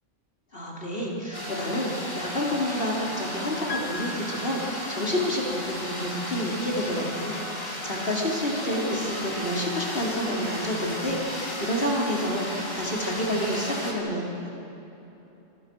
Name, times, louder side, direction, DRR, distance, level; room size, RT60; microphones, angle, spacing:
voice 1, 0.5-14.5, equal, 50° left, -2 dB, 4.4 m, -29 dB
sound 1, 1.3-13.9, left 1 dB, 20° left, 3.4 m, -35 dB
Piano, 3.7-5.4, left 3 dB, 75° left, 1.7 m, -39 dB
25.5 x 25.0 x 6.4 m, 2.9 s
omnidirectional pair, 1.3 m